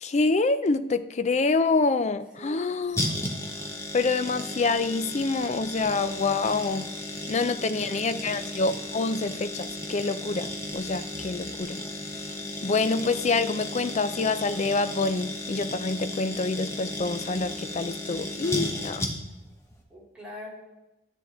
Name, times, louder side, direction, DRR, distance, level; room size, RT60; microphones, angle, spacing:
voice 1, 0.0-3.1 3.9-6.9 7.3-11.8 12.6-19.1, left 3 dB, 40° left, 0.4 m, -26 dB
voice 2, 2.4-2.9 8.2-8.4 19.9-20.5, left 1 dB, 5° right, 2.9 m, -44 dB
sound 1, 3.0-19.5 19.7-19.8, left 1 dB, 15° left, 1.1 m, -34 dB
12.5 x 8.0 x 4.2 m
head